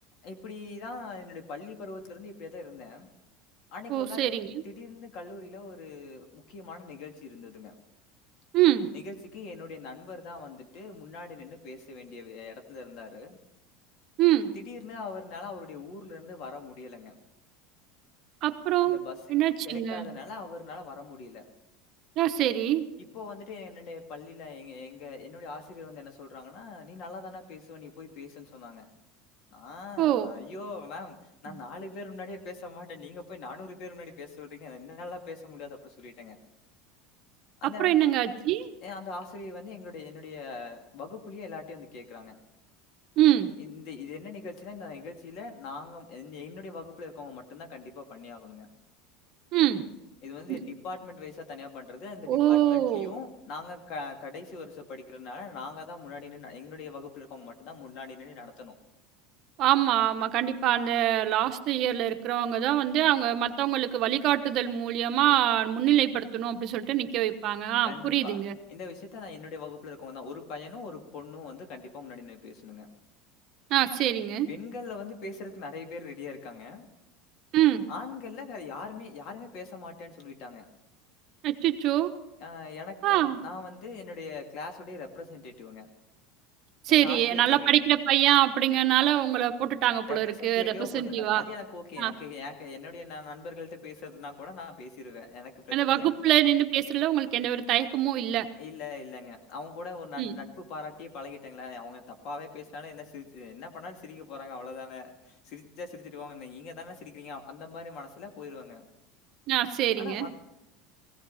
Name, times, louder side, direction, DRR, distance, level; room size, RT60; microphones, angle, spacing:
voice 1, 0.2-3.1 3.7-4.2 4.6-7.7 8.9-13.4 14.5-17.2 18.8-19.4 19.6-21.5 23.0-28.9 29.5-31.2 31.4-36.4 37.6-38.1 38.8-42.4 43.6-48.7 50.2-58.7 67.8-68.4 68.7-72.9 74.5-76.9 77.9-80.7 82.4-85.9 86.9-87.7 90.1-96.2 98.6-108.9 110.0-110.3, left 4 dB, 55° left, 5 dB, 2.4 m, -42 dB
voice 2, 3.9-4.5 8.5-8.9 14.2-14.5 18.4-19.0 19.3-20.1 22.2-22.9 30.0-30.4 31.5-31.6 37.6-38.7 43.2-43.5 49.5-49.8 50.5-50.6 52.3-53.1 59.6-68.5 73.7-74.5 77.5-77.9 81.4-82.1 83.0-83.4 86.8-91.4 92.0-92.1 95.7-98.5 100.2-100.4 109.5-110.3, right 12 dB, 50° right, 8 dB, 1.1 m, -24 dB
18.0 x 16.5 x 4.2 m, 0.93 s
supercardioid pair, 135°, 0 cm